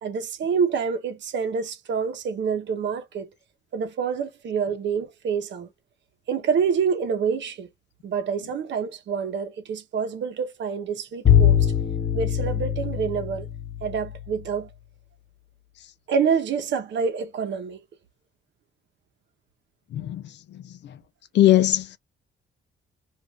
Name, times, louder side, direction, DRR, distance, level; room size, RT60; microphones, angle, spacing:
voice 1, 0.0-3.3 3.7-5.7 6.3-7.7 8.0-11.7 12.1-13.5 13.8-14.7 16.1-17.8, right 6 dB, 65° right, 0.9 m, -27 dB
Bowed string instrument, 11.3-14.3, left 9 dB, 35° left, 1.1 m, -22 dB
voice 2, 19.9-21.0 21.3-22.0, left 13 dB, 60° left, 0.5 m, -21 dB
2.5 x 2.5 x 3.3 m
cardioid pair, 90°, 20 cm